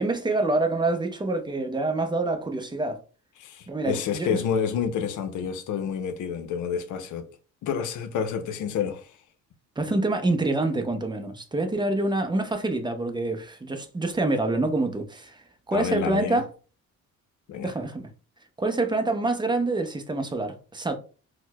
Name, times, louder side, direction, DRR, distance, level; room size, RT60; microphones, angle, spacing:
voice 1, 0.0-3.0 3.7-4.4 9.8-15.4 15.7-16.5 17.6-18.1 18.6-21.0, right 2 dB, 15° right, 0.5 m, -26 dB
voice 2, 3.4-7.3 7.6-9.1 15.7-16.4 17.5-17.7, left 7 dB, 80° left, 0.6 m, -29 dB
4.3 x 2.1 x 2.2 m
cardioid pair, 90°, 30 cm